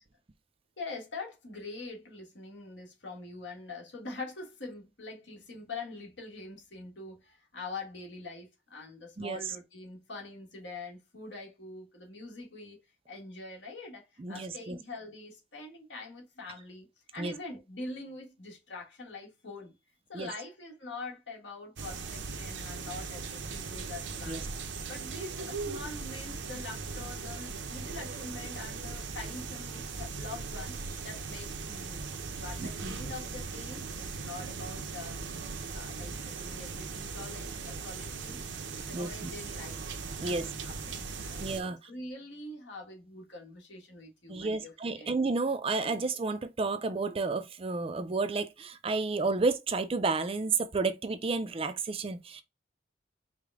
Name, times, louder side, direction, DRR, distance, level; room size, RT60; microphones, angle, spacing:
voice 1, 0.8-12.8 13.1-16.9 17.1-19.7 20.1-24.5 24.9-35.2 35.7-38.4 38.7-39.8 40.2-41.6 41.8-45.2, left 3 dB, 70° left, 1.5 m, -44 dB
voice 2, 9.2-9.6 14.2-14.8 17.2-17.3 20.1-20.3 24.3-24.4 32.6-33.0 38.9-39.3 40.2-40.5 41.4-41.9 44.3-52.4, right 3 dB, 30° right, 0.4 m, -31 dB
sound 1, 21.8-41.6, right 4 dB, 70° right, 0.6 m, -39 dB
4.9 x 2.1 x 3.5 m
head